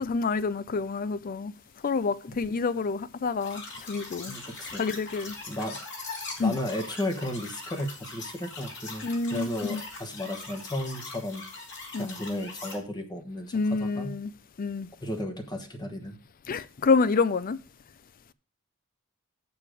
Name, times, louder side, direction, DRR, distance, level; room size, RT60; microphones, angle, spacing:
voice 1, 0.0-1.5 1.8-4.3 4.8-5.4 6.4-6.5 9.0-9.8 11.9-12.1 13.5-14.3 14.6-14.9 16.5-17.6, left 4 dB, 40° left, 0.5 m, -28 dB
sound 1, 3.4-12.8, left 3 dB, 55° left, 2.6 m, -41 dB
voice 2, 4.3-4.8 5.5-5.8 6.4-11.4 12.0-14.1 15.0-16.2, left 1 dB, 20° left, 1.0 m, -34 dB
7.5 x 7.1 x 5.0 m
head